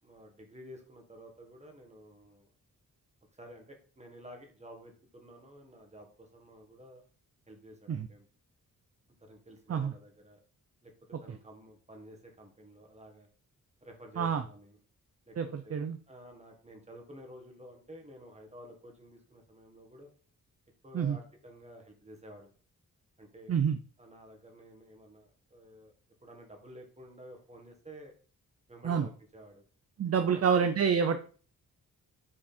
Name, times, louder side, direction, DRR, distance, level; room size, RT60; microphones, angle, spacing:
voice 1, 0.0-2.5 3.4-7.0 7.5-8.3 9.2-10.4 10.8-13.3 13.8-14.8 15.3-15.4 15.6-15.8 16.1-20.1 20.8-22.5 23.2-23.5 24.0-25.9 26.2-28.1 28.7-29.6 30.1-30.5, equal, 20° right, 2 dB, 1.8 m, -51 dB
voice 2, 15.4-16.0 20.9-21.2 23.5-23.8 28.8-29.1 30.0-31.2, right 6 dB, 45° right, 9 dB, 0.5 m, -27 dB
6.0 x 4.8 x 4.3 m, 0.41 s
wide cardioid pair, 125°, 34 cm